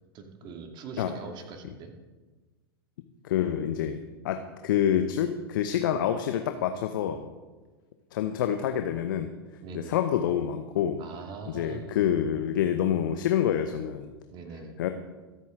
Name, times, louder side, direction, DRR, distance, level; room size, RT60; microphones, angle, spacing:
voice 1, 0.1-1.9 9.6-10.0 11.0-12.0 14.3-14.8, right 5 dB, 35° right, 4 dB, 2.2 m, -42 dB
voice 2, 3.2-7.3 8.1-9.3 9.7-11.0 11.5-14.1 14.8-14.9, left 9 dB, 55° left, 7 dB, 0.9 m, -27 dB
23.0 x 8.5 x 3.7 m, 1.3 s
figure-of-eight pair, 95°, 13 cm